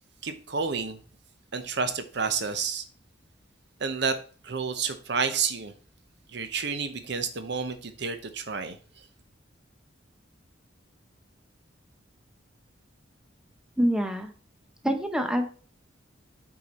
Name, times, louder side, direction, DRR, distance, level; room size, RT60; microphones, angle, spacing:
voice 1, 0.2-1.0 1.5-2.8 3.8-4.2 4.4-5.7 6.3-9.0, right 5 dB, 60° right, 0.8 m, -30 dB
voice 2, 13.8-14.3 14.8-15.5, equal, 5° right, 0.7 m, -25 dB
8.4 x 4.6 x 4.2 m
head